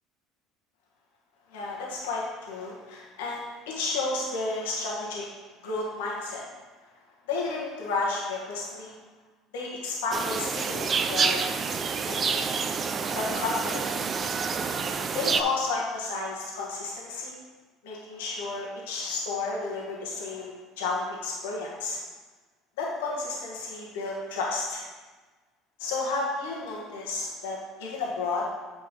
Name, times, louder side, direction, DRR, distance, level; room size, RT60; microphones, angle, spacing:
voice 1, 1.5-5.3 5.6-6.4 7.3-8.9 9.5-11.4 12.1-12.5 13.2-13.8 14.7-14.8 15.1-17.4 17.8-22.0 22.8-24.8 25.8-28.5, left 3 dB, 85° left, -3 dB, 1.8 m, -32 dB
sound 1, 10.1-15.4, right 5 dB, 35° right, 0.6 m, -28 dB
8.4 x 5.3 x 3.8 m, 1.3 s
supercardioid pair, 85°, 0 cm